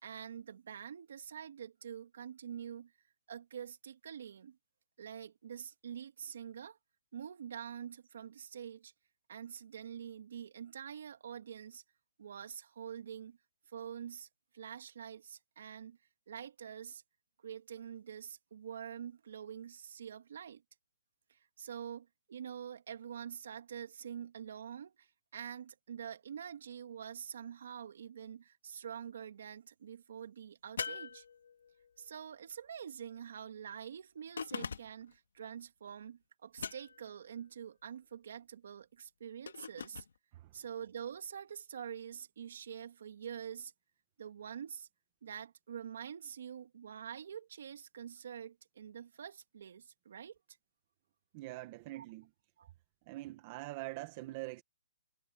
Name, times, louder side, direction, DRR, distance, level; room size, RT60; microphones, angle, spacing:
voice 1, 0.0-2.9 3.3-4.6 5.0-6.8 7.1-8.9 9.3-11.8 12.2-13.4 13.7-14.3 14.5-16.0 16.3-17.0 17.4-20.6 21.3-31.2 32.0-40.0 40.5-43.7 44.2-44.9 45.2-50.4 51.9-52.0 52.6-52.7, right 8 dB, 55° right, 3.0 m, -46 dB
sound 1, 30.8-31.9 34.4-35.1 36.6-37.2 39.5-40.1, left 6 dB, 70° left, 2.1 m, -42 dB
voice 2, 51.3-52.3 53.1-54.6, right 19 dB, 25° right, 1.4 m, -44 dB
hypercardioid pair, 170°, 0 cm